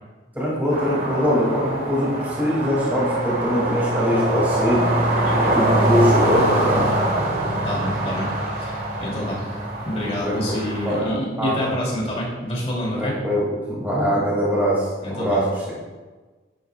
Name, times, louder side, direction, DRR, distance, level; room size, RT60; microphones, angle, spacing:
voice 1, 0.3-5.2 5.5-6.9 10.2-10.4 10.8-11.6 13.0-15.7, equal, 10° right, -7 dB, 2.8 m, -22 dB
sound 1, 0.7-11.0, right 1 dB, 50° right, 2.1 m, -23 dB
voice 2, 5.2-5.5 7.6-8.3 8.5-9.4 9.8-13.2 15.0-15.4, left 1 dB, 35° left, -4 dB, 3.1 m, -27 dB
11.0 x 10.5 x 2.5 m, 1.3 s
head